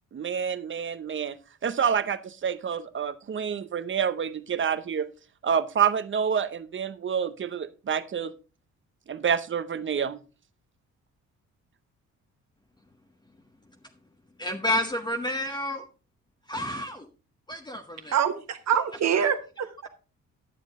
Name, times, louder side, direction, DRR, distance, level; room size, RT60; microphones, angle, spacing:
voice 1, 0.1-1.4 1.6-5.1 5.4-8.3 9.1-10.2, right 7 dB, 40° right, 0.8 m, -28 dB
voice 2, 14.4-15.8 16.5-17.1 17.5-18.2, left 1 dB, 15° left, 0.9 m, -30 dB
voice 3, 18.1-19.9, right 8 dB, 60° right, 1.3 m, -25 dB
11.0 x 7.3 x 3.6 m
cardioid pair, 90°, 30 cm